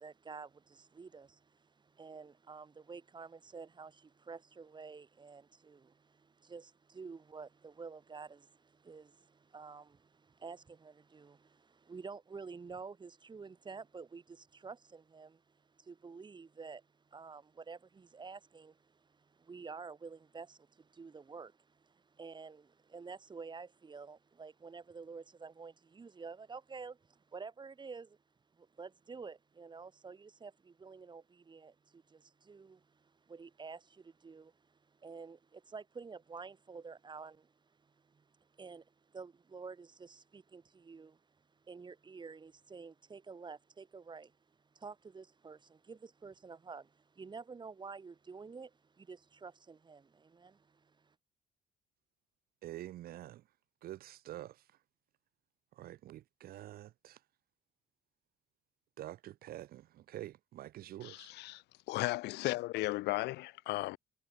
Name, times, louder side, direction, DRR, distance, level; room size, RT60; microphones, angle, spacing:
voice 1, 0.0-28.2 28.5-51.1, right 5 dB, 25° right, 4.2 m, -50 dB
voice 2, 52.6-53.4 53.8-54.8 55.7-57.2 59.0-61.3, right 14 dB, 65° right, 0.8 m, -47 dB
voice 3, 61.0-64.0, left 19 dB, 85° left, 1.2 m, -36 dB
cardioid pair, 110°, 17 cm